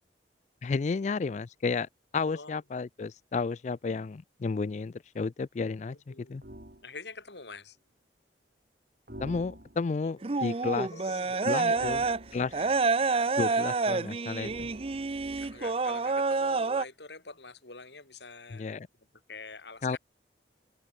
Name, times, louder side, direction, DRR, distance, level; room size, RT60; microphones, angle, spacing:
voice 1, 0.6-6.0 6.3-6.4 9.2-10.9 11.5-12.0 12.3-12.5 13.4-14.7 18.5-18.9 19.8-20.0, left 4 dB, 40° left, 0.3 m, -32 dB
voice 2, 2.3-2.6 5.9-6.4 6.8-7.8 10.0-11.8 12.5-12.7 13.4-13.8 15.4-20.0, left 3 dB, 75° left, 5.5 m, -47 dB
sound 1, 6.4-6.8 9.1-10.0 11.7-12.8 14.4-15.8, right 1 dB, 55° right, 4.4 m, -47 dB
sound 2, 10.2-12.2 12.5-16.9, right 4 dB, 30° right, 0.6 m, -28 dB
head